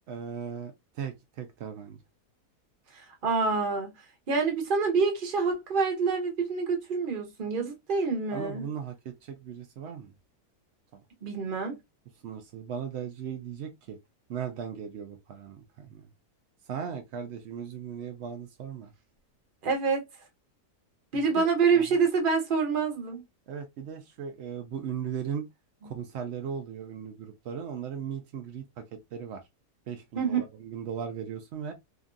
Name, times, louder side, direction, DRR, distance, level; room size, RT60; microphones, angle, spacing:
voice 1, 0.1-2.0 8.3-10.1 10.9-11.0 12.2-14.0 14.3-16.1 16.7-18.9 21.1-21.5 21.7-22.0 23.5-25.4 25.8-28.8 29.1-29.4 29.9-31.7, right 8 dB, 80° right, 0.6 m, -37 dB
voice 2, 3.2-3.9 4.3-8.7 11.2-11.8 19.6-20.0 21.1-23.2 25.8-25.9 30.1-30.4, right 5 dB, 45° right, 0.8 m, -26 dB
2.9 x 2.6 x 2.4 m
omnidirectional pair, 1.7 m